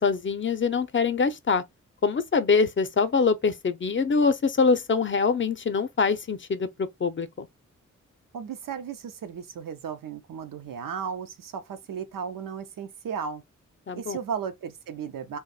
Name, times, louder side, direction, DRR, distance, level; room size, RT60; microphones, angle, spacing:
voice 1, 0.0-1.6 2.0-7.5 13.9-14.2, left 5 dB, 35° left, 0.6 m, -24 dB
voice 2, 8.3-13.4 14.0-15.4, right 7 dB, 80° right, 0.7 m, -35 dB
2.5 x 2.3 x 3.9 m
cardioid pair, 45°, 33 cm